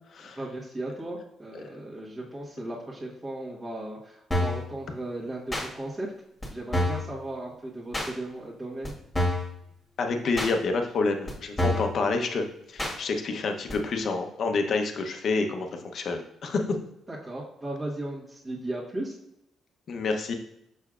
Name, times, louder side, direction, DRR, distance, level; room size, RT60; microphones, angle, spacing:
voice 1, 0.3-6.1 6.5-8.9 17.1-19.2, right 1 dB, 25° right, -6 dB, 1.3 m, -36 dB
sound 1, 4.3-4.6 5.5-5.7 6.4-6.5 6.7-7.1 7.9-8.1 8.8-8.9 9.1-9.5 10.4-10.5 11.3-11.4 11.6-11.9 12.8-13.0 13.7-13.8, left 1 dB, 10° left, 1.6 m, -27 dB
voice 2, 10.0-15.7 15.9-16.6 19.9-20.3, left 3 dB, 50° left, 4 dB, 0.8 m, -28 dB
6.7 x 6.0 x 2.4 m, 0.78 s
cardioid pair, 130°, 0 cm